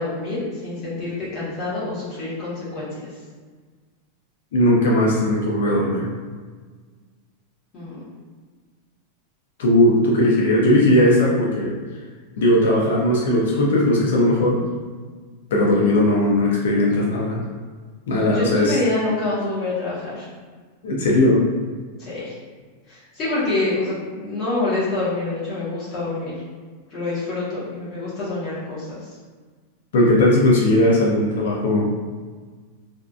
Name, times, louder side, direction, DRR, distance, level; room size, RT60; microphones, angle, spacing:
voice 1, 0.0-2.9 7.7-8.0 18.3-20.2 22.0-22.3 22.9-26.3 26.9-29.0, left 2 dB, 25° left, -10 dB, 1.0 m, -26 dB
voice 2, 4.5-6.1 9.6-11.7 12.4-14.7 15.5-17.4 18.1-18.8 20.8-21.5 29.9-31.9, left 1 dB, 80° left, -3 dB, 0.5 m, -18 dB
2.5 x 2.4 x 2.3 m, 1.5 s
supercardioid pair, 175°, 0 cm